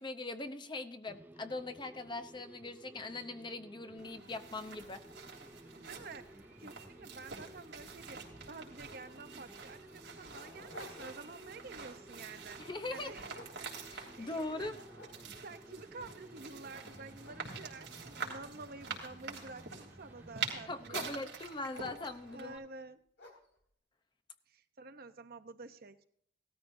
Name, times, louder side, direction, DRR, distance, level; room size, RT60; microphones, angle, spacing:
voice 1, 0.0-5.0 12.6-13.1 13.9-14.8 20.7-22.6, left 2 dB, 25° left, 8 dB, 0.7 m, -41 dB
sound 1, 1.1-21.0, right 1 dB, 10° right, 0.4 m, -56 dB
sound 2, 4.0-22.6, right 5 dB, 70° right, 3.3 m, -46 dB
voice 2, 5.6-8.2 8.5-12.6 12.9-13.4 14.1-14.8 15.4-21.2 22.3-23.0 24.5-26.0, right 3 dB, 55° right, 9 dB, 0.8 m, -50 dB
Dog, 9.1-9.2 9.8-11.5 11.9-12.2 12.8-14.3 14.7-15.6 16.2-16.3 16.8-19.1 19.8-20.4 21.7-22.5 23.2-23.6, left 1 dB, 70° left, 4.0 m, -55 dB
17.5 x 13.5 x 2.7 m, 0.65 s
head